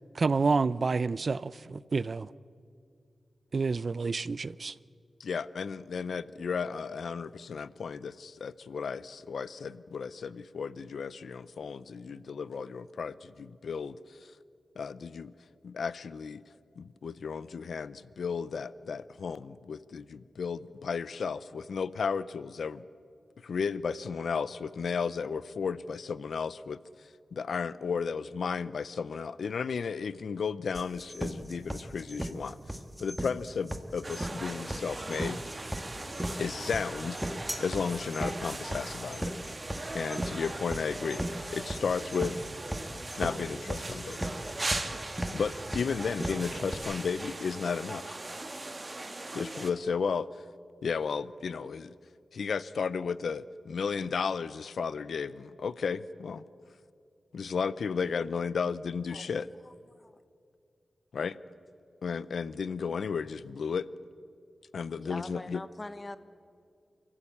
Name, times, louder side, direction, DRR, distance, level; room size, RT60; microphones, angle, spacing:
voice 1, 0.1-2.3 3.5-4.7, right 4 dB, 55° right, 19 dB, 0.5 m, -29 dB
voice 2, 5.2-14.3 14.8-15.3 15.6-16.4 16.8-22.8 23.4-26.8 27.3-32.6 33.0-35.4 36.4-37.2 37.6-39.3 39.9-41.2 41.5-42.3 43.2-44.3 45.3-48.2 49.3-50.3 50.8-51.9 52.3-56.4 57.3-59.5 61.1-61.4 62.0-63.9 64.7-65.6, left 5 dB, 90° left, 17 dB, 0.6 m, -34 dB
sound 1, 30.7-46.7, right 1 dB, 5° right, 1.7 m, -36 dB
sound 2, 34.0-49.7, right 2 dB, 30° right, 1.8 m, -39 dB
voice 3, 59.6-60.2 65.0-66.2, left 2 dB, 25° left, 12 dB, 1.1 m, -43 dB
29.5 x 15.0 x 8.5 m, 2.4 s
wide cardioid pair, 110°, 0 cm